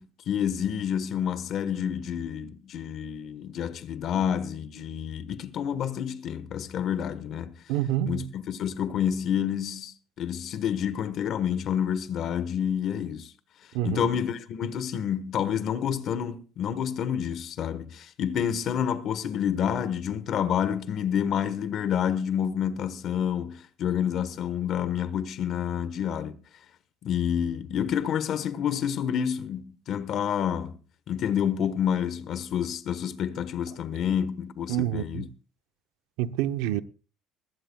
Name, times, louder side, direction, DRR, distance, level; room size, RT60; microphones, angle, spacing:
voice 1, 0.0-7.6 8.1-13.3 13.8-26.3 27.0-30.8 31.1-35.3, left 8 dB, 40° left, 1.1 m, -29 dB
voice 2, 7.7-8.3 13.7-14.1 34.7-35.3 36.2-36.8, right 12 dB, 90° right, 0.7 m, -27 dB
21.0 x 15.5 x 2.3 m
cardioid pair, 175°, 0 cm